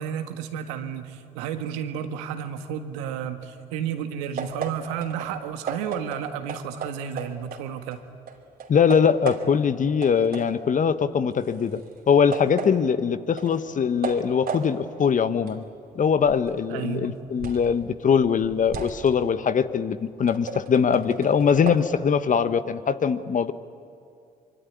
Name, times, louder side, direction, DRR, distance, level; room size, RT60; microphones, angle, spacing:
voice 1, 0.0-8.0 16.7-17.2, right 8 dB, 80° right, 8 dB, 1.6 m, -32 dB
sound 1, 4.4-8.0 8.3-9.7 10.0-17.8 18.1-21.8, right 5 dB, 55° right, 3.0 m, -36 dB
voice 2, 8.7-15.6 15.9-23.5, left 6 dB, 45° left, 12 dB, 1.3 m, -22 dB
25.0 x 24.0 x 9.5 m, 2.5 s
hypercardioid pair, 50°, 18 cm